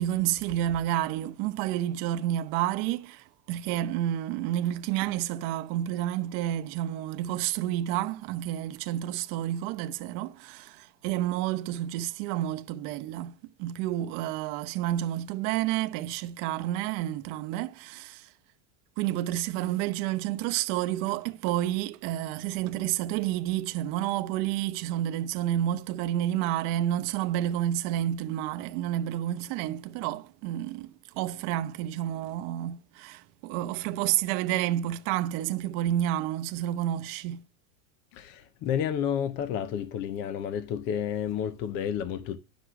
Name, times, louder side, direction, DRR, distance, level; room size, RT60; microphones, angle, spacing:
voice 1, 0.0-18.3 19.0-37.4, right 12 dB, 40° right, 0.8 m, -30 dB
voice 2, 38.1-42.4, left 8 dB, 25° left, 0.4 m, -31 dB
10.0 x 6.2 x 5.8 m
supercardioid pair, 155°, 49 cm